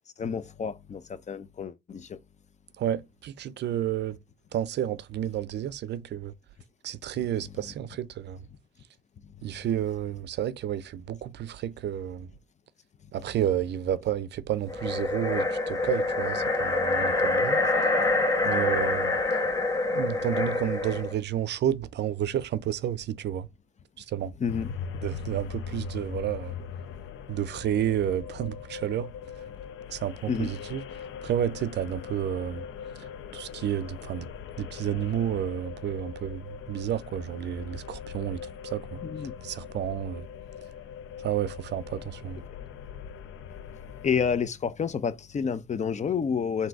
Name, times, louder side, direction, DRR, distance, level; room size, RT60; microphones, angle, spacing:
voice 1, 0.2-2.2 24.4-24.7 30.3-30.5 39.0-39.3 44.0-46.7, left 6 dB, 35° left, 0.6 m, -29 dB
voice 2, 2.8-4.2 4.5-6.3 6.8-8.5 9.4-12.3 13.1-17.6 18.4-19.1 19.9-23.5 24.0-24.3 25.0-26.6 27.3-29.1 29.9-30.8 31.2-32.6 33.0-34.3 34.6-39.0 39.4-40.3 41.2-42.4, right 10 dB, 60° right, 0.4 m, -31 dB
sound 1, 14.7-21.1, left 2 dB, 15° left, 1.9 m, -26 dB
sound 2, 24.5-44.4, left 7 dB, 80° left, 0.6 m, -41 dB
3.8 x 2.7 x 4.5 m
cardioid pair, 90°, 20 cm